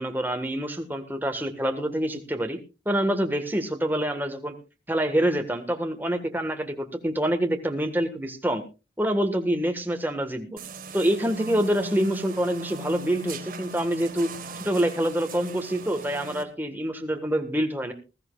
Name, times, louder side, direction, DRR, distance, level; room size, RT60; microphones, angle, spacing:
voice 1, 0.0-2.6 2.8-4.5 4.9-8.6 9.0-10.6 10.9-14.3 14.6-17.9, right 1 dB, 10° right, 5 dB, 1.5 m, -26 dB
sound 1, 10.6-16.4, right 3 dB, 50° right, 1.5 m, -38 dB
20.5 x 14.0 x 2.4 m, 0.29 s
head